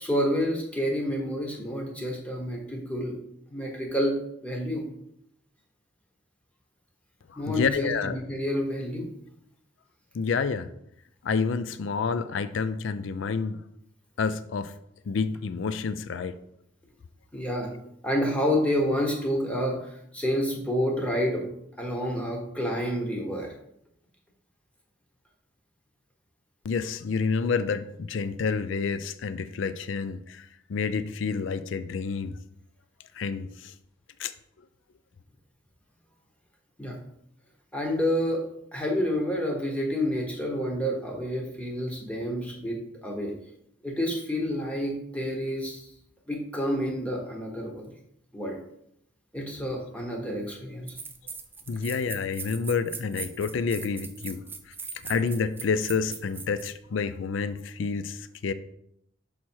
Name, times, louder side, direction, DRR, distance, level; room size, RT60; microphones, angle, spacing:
voice 1, 0.0-3.2 3.5-4.1 4.4-4.8 7.4-9.1 17.3-17.7 18.0-21.5 21.8-23.5 36.8-37.0 37.7-38.4 38.7-43.3 43.8-45.8 46.3-47.9 48.3-48.6 49.3-50.9, equal, 5° left, 0 dB, 1.2 m, -29 dB
voice 2, 7.3-8.2 10.1-10.7 11.2-13.6 14.2-14.7 15.1-16.3 26.6-32.4 33.1-33.7 34.2-34.3 51.7-54.4 55.0-58.5, left 5 dB, 65° left, 13 dB, 0.4 m, -29 dB
sound 1, 50.3-50.4 50.9-56.7, right 5 dB, 10° right, 0.4 m, -40 dB
6.2 x 4.2 x 4.5 m, 0.74 s
head